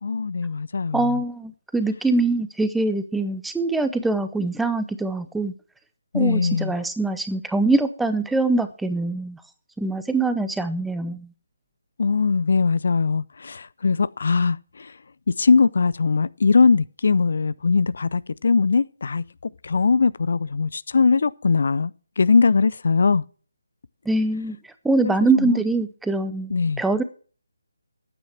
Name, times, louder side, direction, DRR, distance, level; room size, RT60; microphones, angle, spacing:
voice 1, 0.0-1.1 6.1-6.7 12.0-14.9 15.4-19.2 19.6-21.9 22.2-23.2 25.0-25.6 26.5-26.8, left 4 dB, 55° left, 0.5 m, -20 dB
voice 2, 0.9-5.5 6.1-9.4 9.8-11.3 24.1-24.6 24.8-27.0, right 2 dB, 5° right, 0.7 m, -23 dB
9.6 x 8.9 x 7.3 m
figure-of-eight pair, 150°, 0 cm